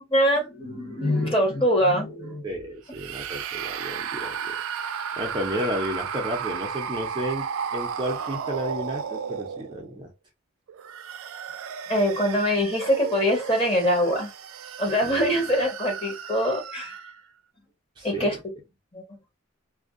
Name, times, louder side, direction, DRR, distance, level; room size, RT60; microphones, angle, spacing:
voice 1, 0.1-2.5 11.9-14.3 14.8-17.0 18.0-18.4 18.9-19.0, equal, 25° left, 1.1 m, -23 dB
voice 2, 2.4-4.6 5.2-10.1 15.0-15.5 18.0-18.3, equal, 20° right, 0.5 m, -32 dB
sound 1, 2.9-10.0 10.7-17.2, right 7 dB, 85° right, 0.3 m, -34 dB
2.5 x 2.1 x 2.5 m
head